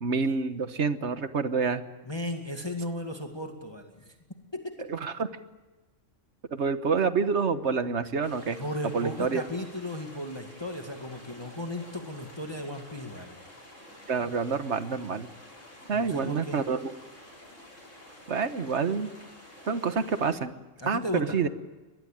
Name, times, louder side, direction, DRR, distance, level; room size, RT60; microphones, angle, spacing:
voice 1, 0.0-1.8 4.9-5.3 6.5-8.6 8.9-9.4 14.1-15.3 15.9-16.9 18.3-19.1 19.7-20.5 20.9-21.5, right 5 dB, 60° right, 11 dB, 1.5 m, -27 dB
voice 2, 2.0-4.2 4.5-4.8 8.6-13.4 15.9-16.6 20.8-21.4, left 1 dB, 20° left, 3 dB, 2.1 m, -35 dB
sound 1, 8.2-20.3, left 1 dB, 65° left, 7.4 m, -50 dB
24.0 x 20.5 x 8.9 m, 1.2 s
omnidirectional pair, 1.3 m